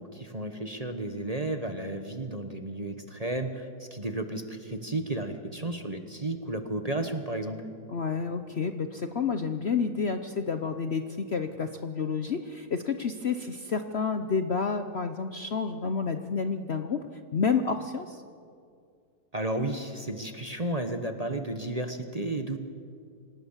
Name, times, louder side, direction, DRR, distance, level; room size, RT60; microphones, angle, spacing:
voice 1, 0.0-7.6 19.3-22.6, right 2 dB, 25° right, 7 dB, 1.1 m, -33 dB
voice 2, 7.9-18.2, left 5 dB, 50° left, 8 dB, 0.9 m, -30 dB
26.0 x 18.0 x 7.3 m, 2.3 s
omnidirectional pair, 1.8 m